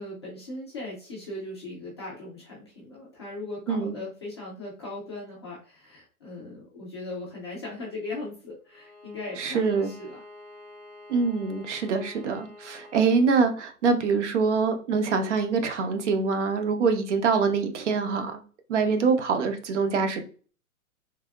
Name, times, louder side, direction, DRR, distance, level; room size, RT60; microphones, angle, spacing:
voice 1, 0.0-10.2, left 2 dB, 20° left, -6 dB, 0.4 m, -38 dB
Bowed string instrument, 8.7-13.6, left 2 dB, 5° right, 1.2 m, -48 dB
voice 2, 9.4-9.9 11.1-18.4 18.7-20.2, right 5 dB, 55° right, 7 dB, 0.6 m, -24 dB
3.3 x 2.2 x 2.3 m, 0.39 s
hypercardioid pair, 135°, 44 cm